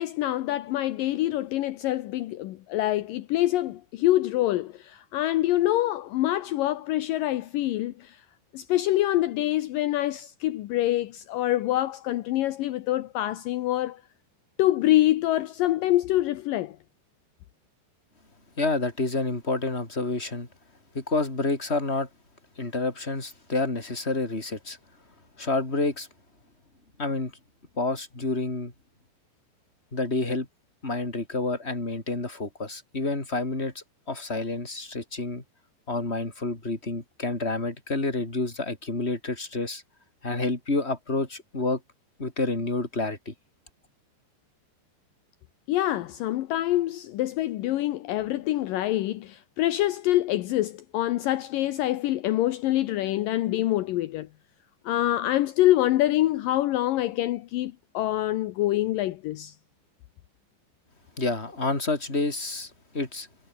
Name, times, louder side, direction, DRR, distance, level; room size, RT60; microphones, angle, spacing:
voice 1, 0.0-8.2 8.5-14.0 14.6-16.8 45.7-54.3 54.9-59.6, left 15 dB, 75° left, 2.0 m, -25 dB
voice 2, 18.6-20.5 20.9-22.1 22.6-24.8 25.4-26.1 27.0-27.3 27.8-28.7 29.9-30.5 30.8-35.4 35.9-39.8 40.2-41.8 42.2-43.3 61.2-63.3, left 2 dB, 15° left, 4.6 m, -29 dB
omnidirectional pair, 5.2 m